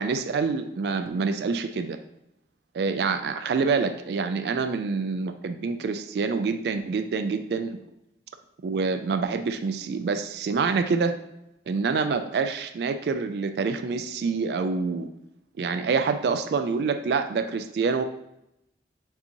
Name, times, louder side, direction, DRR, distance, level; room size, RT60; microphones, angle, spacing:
voice 1, 0.0-2.0 2.7-7.8 8.6-11.1 11.7-15.1 15.6-18.0, right 4 dB, 60° right, 9 dB, 0.3 m, -26 dB
6.7 x 2.9 x 2.7 m, 0.82 s
head